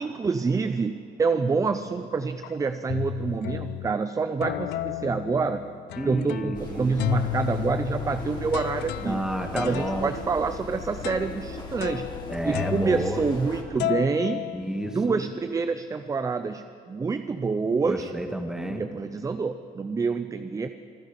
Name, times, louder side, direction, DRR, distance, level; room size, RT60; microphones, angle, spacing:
voice 1, 0.0-5.6 6.0-9.3 9.6-12.1 12.4-14.4 14.9-18.1 18.8-20.7, right 4 dB, 20° right, 10 dB, 0.5 m, -27 dB
sound 1, 1.4-1.8 2.4-2.5 2.9-4.0 4.4-6.7 7.0-13.5 13.8-15.2, left 15 dB, 80° left, 0.5 m, -33 dB
voice 2, 6.0-7.0 9.0-10.1 12.3-13.2 14.5-15.2 17.8-18.8, right 1 dB, 5° right, 4 dB, 1.6 m, -30 dB
sound 2, 6.5-13.6, left 3 dB, 25° left, 2.9 m, -39 dB
25.5 x 10.5 x 5.1 m, 2.8 s
cardioid pair, 110°, 17 cm